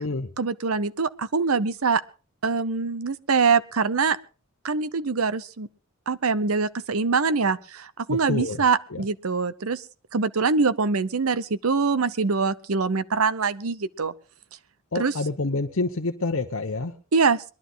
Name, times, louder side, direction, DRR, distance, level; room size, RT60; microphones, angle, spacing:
voice 1, 0.4-2.0 2.4-4.2 4.6-5.7 6.1-9.8 10.1-14.1 14.9-15.1 17.1-17.4, right 4 dB, 80° right, 15 dB, 0.8 m, -24 dB
voice 2, 8.1-8.6 8.9-9.0 14.9-16.9, left 3 dB, 65° left, 3 dB, 0.9 m, -27 dB
22.0 x 11.5 x 4.0 m, 0.35 s
head